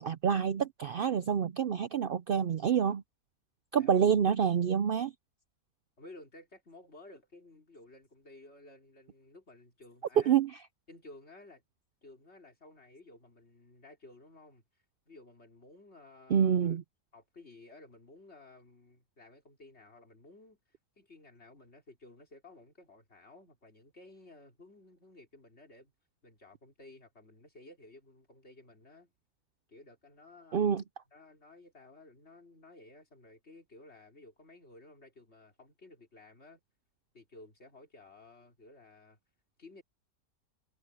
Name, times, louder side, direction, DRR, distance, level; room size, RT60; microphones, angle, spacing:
voice 1, 0.0-3.0 3.7-5.1 10.3-10.6 16.3-16.8 30.5-30.8, right 8 dB, 80° right, 0.5 m, -27 dB
voice 2, 6.0-10.4 10.9-11.6 12.0-14.6 15.1-16.7 17.1-25.9 26.2-29.1 29.7-30.8 31.1-36.6 37.1-39.2 39.6-39.8, left 2 dB, 45° left, 3.9 m, -55 dB
omnidirectional pair, 1.6 m